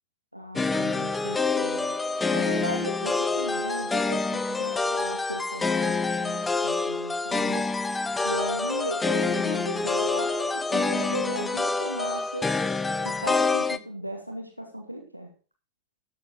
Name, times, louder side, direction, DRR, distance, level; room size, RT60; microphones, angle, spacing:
voice 1, 0.3-2.0 2.3-7.7 8.2-12.5 13.0-15.3, equal, 90° right, 2.4 m, -36 dB
sound 1, 0.6-13.8, left 3 dB, 10° left, 0.7 m, -27 dB
14.0 x 8.5 x 3.9 m
figure-of-eight pair, 90°, 0 cm